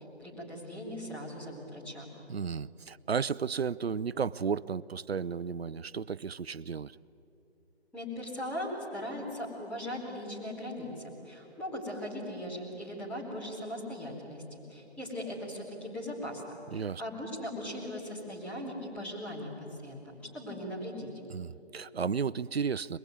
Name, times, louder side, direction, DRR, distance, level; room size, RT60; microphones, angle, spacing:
voice 1, 0.2-2.1 7.9-10.9 11.2-21.1, left 1 dB, 5° left, -7 dB, 4.2 m, -39 dB
voice 2, 2.3-7.0 16.7-17.0 21.3-23.0, right 6 dB, 70° right, 16 dB, 0.7 m, -33 dB
27.0 x 21.5 x 9.6 m, 2.9 s
figure-of-eight pair, 155°, 33 cm